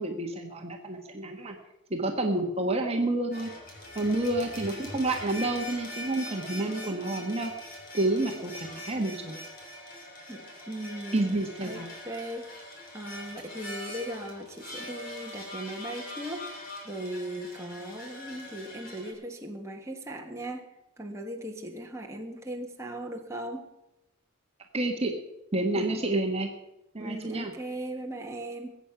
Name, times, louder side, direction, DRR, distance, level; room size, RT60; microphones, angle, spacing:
voice 1, 0.0-1.6 1.9-3.5 3.9-7.5 7.9-9.4 11.1-11.9 24.7-25.1 25.5-26.5 26.9-27.5, right 2 dB, 30° right, 2 dB, 1.4 m, -29 dB
sound 1, 3.3-19.1, left 1 dB, 45° left, 3.8 m, -42 dB
voice 2, 10.3-11.3 11.6-20.7 21.0-23.7 25.7-26.0 27.0-28.7, right 1 dB, 15° right, 1 dB, 1.6 m, -38 dB
21.5 x 8.4 x 6.0 m, 0.93 s
head